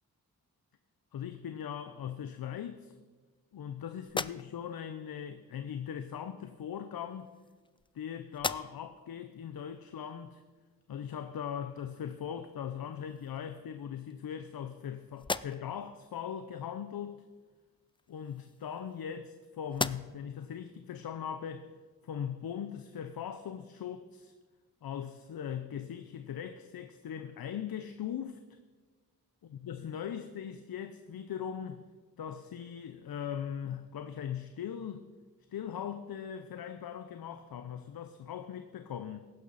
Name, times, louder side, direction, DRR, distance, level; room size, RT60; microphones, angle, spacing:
voice 1, 1.1-2.9 3.5-7.3 7.9-10.4 10.9-17.2 18.1-21.7 22.0-24.3 24.8-28.4 29.6-31.8 32.2-35.1 35.5-39.3, left 8 dB, 75° left, 0.7 m, -40 dB
sound 1, 4.0-4.9 6.0-6.2 7.1-8.0 8.3-9.0 9.5-9.6 12.3-12.4 12.8-13.5 14.1-14.8 15.1-15.9 17.9-19.3 19.7-20.4, left 3 dB, 15° left, 0.3 m, -39 dB
15.5 x 11.5 x 4.1 m
cardioid pair, 50°, 36 cm